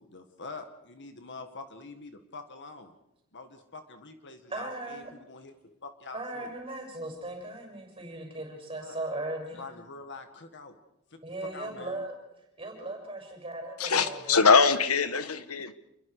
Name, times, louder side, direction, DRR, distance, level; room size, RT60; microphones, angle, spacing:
voice 1, 0.0-2.9 3.3-5.6 5.8-6.5 8.8-9.0 9.5-10.8 11.1-12.0, left 3 dB, 55° left, 1.8 m, -45 dB
voice 2, 4.5-5.1 6.1-9.7 11.2-12.2 12.6-14.4, right 2 dB, 25° right, 6.8 m, -38 dB
voice 3, 13.8-15.7, left 5 dB, 75° left, 1.3 m, -22 dB
28.0 x 22.0 x 4.9 m
head